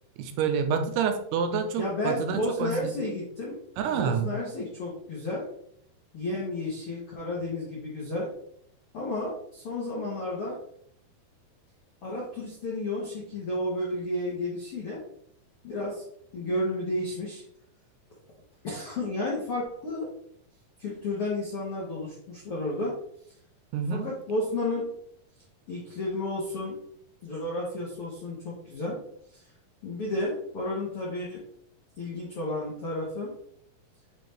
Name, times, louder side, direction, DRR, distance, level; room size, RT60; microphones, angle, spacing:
voice 1, 0.2-2.9 3.8-4.3 23.7-24.1, right 6 dB, 85° right, 6 dB, 2.7 m, -28 dB
voice 2, 1.8-3.5 3.9-5.5 6.1-8.3 8.9-10.6 12.0-15.0 15.6-16.0 16.3-17.4 18.6-20.1 20.8-22.9 24.0-24.9 25.7-26.7 27.2-29.0 29.8-31.4 32.0-33.3, left 2 dB, 70° left, -5 dB, 1.3 m, -32 dB
8.7 x 3.5 x 3.2 m, 0.68 s
omnidirectional pair, 4.6 m